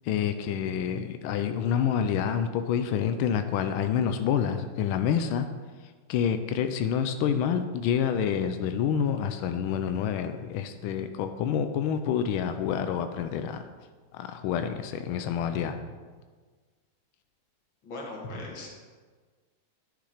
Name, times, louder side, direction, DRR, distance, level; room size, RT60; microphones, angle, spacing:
voice 1, 0.0-5.5 6.1-13.7 14.1-15.8, left 8 dB, 90° left, 8 dB, 1.4 m, -28 dB
voice 2, 17.8-18.7, left 2 dB, 70° left, -1 dB, 2.2 m, -39 dB
10.5 x 5.8 x 4.9 m, 1.5 s
omnidirectional pair, 2.2 m